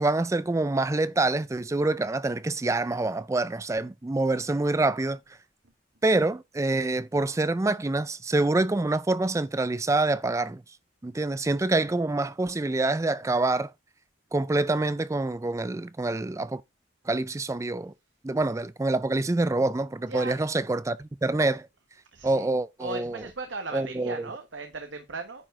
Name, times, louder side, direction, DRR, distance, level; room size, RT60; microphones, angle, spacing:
voice 1, 0.0-5.2 6.0-10.6 11.0-13.7 14.3-16.6 17.1-17.9 18.2-21.7 22.2-23.2 23.7-24.3, right 2 dB, 15° right, 0.4 m, -26 dB
voice 2, 22.1-22.5 22.8-25.5, right 3 dB, 85° right, 1.3 m, -37 dB
9.9 x 4.8 x 4.4 m
head